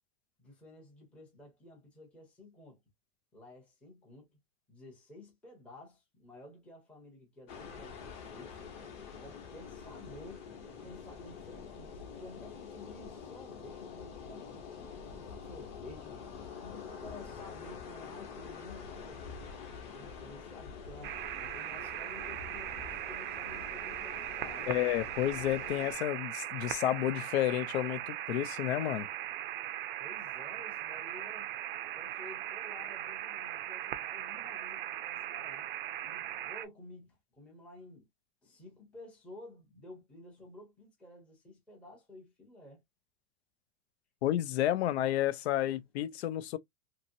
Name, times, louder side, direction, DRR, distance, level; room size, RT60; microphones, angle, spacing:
voice 1, 0.4-2.8 3.3-4.3 4.7-8.6 9.2-10.5 10.8-16.2 16.6-24.7 30.0-31.5 31.9-35.7 36.0-38.1 38.4-42.8 45.6-45.8, left 1 dB, 5° left, 0.6 m, -52 dB
sound 1, 7.5-25.9, left 6 dB, 35° left, 0.9 m, -46 dB
sound 2, 21.0-36.6, right 13 dB, 55° right, 0.5 m, -39 dB
voice 2, 24.7-29.1 44.2-46.6, left 13 dB, 85° left, 0.6 m, -31 dB
2.9 x 2.7 x 2.6 m
supercardioid pair, 180°, 31 cm